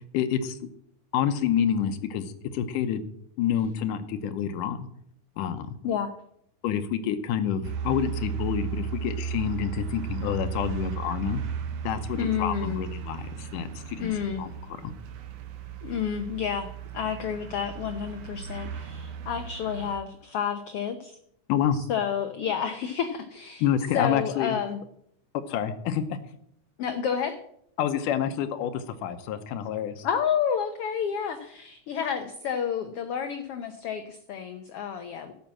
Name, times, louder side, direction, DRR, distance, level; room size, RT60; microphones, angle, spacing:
voice 1, 0.1-0.6 1.1-3.0 3.4-4.9 5.4-5.8 6.6-11.4 11.8-14.1 14.4-14.5 14.8-14.9 21.5-21.8 23.6-24.6 25.5-26.2 27.8-30.1, left 9 dB, 90° left, 8 dB, 2.4 m, -28 dB
sound 1, 7.6-20.0, right 7 dB, 75° right, 2.5 m, -35 dB
voice 2, 12.2-12.8 14.0-14.4 15.8-16.7 16.9-21.2 21.7-23.6 23.9-24.8 26.8-27.4 30.0-35.3, left 7 dB, 70° left, 7 dB, 1.5 m, -30 dB
12.5 x 7.3 x 7.3 m, 0.70 s
omnidirectional pair, 3.6 m